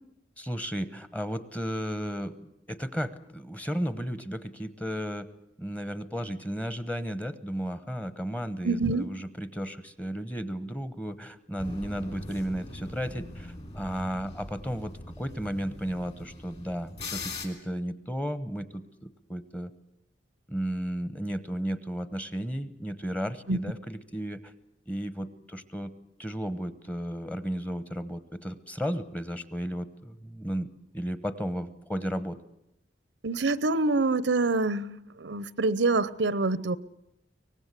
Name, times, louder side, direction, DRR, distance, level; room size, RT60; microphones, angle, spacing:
voice 1, 0.4-2.4 2.7-5.3 5.6-19.7 20.5-24.4 24.9-25.9 26.2-30.7 30.9-32.4, equal, 10° left, 1.0 m, -34 dB
voice 2, 8.6-9.1 23.5-23.6 33.2-36.8, right 3 dB, 85° right, 0.8 m, -26 dB
sound 1, 11.6-17.5, left 2 dB, 35° left, 3.3 m, -41 dB
24.0 x 19.0 x 8.2 m
head